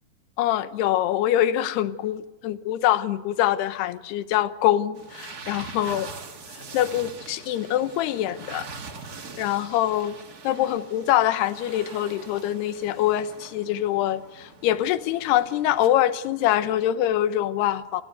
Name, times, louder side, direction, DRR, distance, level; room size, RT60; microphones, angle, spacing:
voice 1, 0.4-6.1 6.5-8.7 9.4-10.2 10.4-18.0, left 12 dB, 85° left, 13 dB, 3.1 m, -24 dB
sound 1, 4.9-15.9, right 4 dB, 40° right, 1.3 m, -43 dB
29.0 x 18.5 x 8.0 m, 1.1 s
omnidirectional pair, 4.6 m